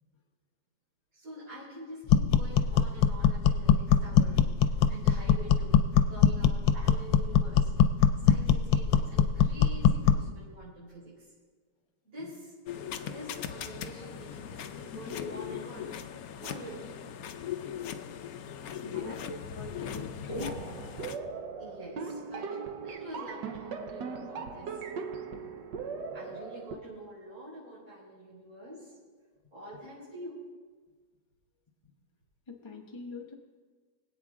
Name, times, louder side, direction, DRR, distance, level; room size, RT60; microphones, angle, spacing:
voice 1, 1.1-4.5 4.9-5.8 6.1-7.7 8.2-11.3 12.0-12.5 13.0-17.0 18.8-19.3 21.6-24.8 26.1-28.9 29.5-30.4, right 1 dB, 45° right, -9 dB, 5.1 m, -46 dB
sound 1, 2.1-10.3, left 8 dB, 90° left, 1.4 m, -23 dB
sound 2, 12.7-21.2, left 9 dB, 65° left, 1.0 m, -39 dB
voice 2, 19.5-20.6 25.3-25.5 32.5-33.3, left 3 dB, 25° left, 2 dB, 0.6 m, -41 dB
sound 3, 20.3-26.8, right 5 dB, 70° right, 1.5 m, -39 dB
23.5 x 8.6 x 3.6 m, 1.5 s
omnidirectional pair, 2.0 m